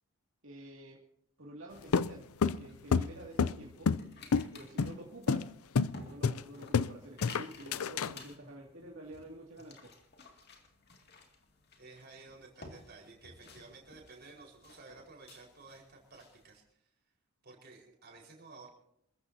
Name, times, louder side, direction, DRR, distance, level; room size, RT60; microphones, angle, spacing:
voice 1, 0.4-1.0 1.4-2.2 2.6-3.9 4.5-5.5 6.0-9.9, right 1 dB, 65° right, -2 dB, 2.4 m, -49 dB
sound 1, 1.9-4.1 4.3-4.5 4.8-5.0 5.3-5.5 5.7-5.9 6.2-6.9 7.2-8.1, left 5 dB, 80° left, 0.5 m, -28 dB
sound 2, 2.1-16.6, left 2 dB, 45° left, 2.5 m, -55 dB
voice 2, 11.8-16.9 17.4-18.7, right 3 dB, 45° right, 0 dB, 4.8 m, -54 dB
27.5 x 14.5 x 2.8 m, 0.77 s
head